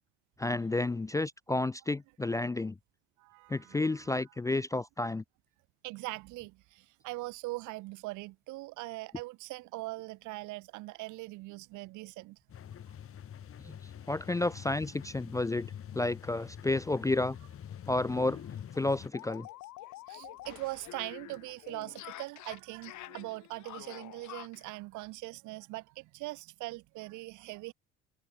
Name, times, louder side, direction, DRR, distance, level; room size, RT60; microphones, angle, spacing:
voice 1, 0.4-2.7 3.5-5.2 13.7-13.8 14.1-17.4 17.9-18.4 18.8-19.5, left 2 dB, 10° left, 0.4 m, -31 dB
voice 2, 3.2-4.2 5.8-6.6 7.0-12.4 13.6-13.7 20.1-27.7, right 21 dB, 70° right, 1.8 m, -41 dB
sound 1, 12.5-19.1, left 9 dB, 45° left, 1.7 m, -46 dB
sound 2, 17.7-17.8 18.1-18.2 18.5-24.7, left 17 dB, 65° left, 3.4 m, -48 dB
hypercardioid pair, 60°, 31 cm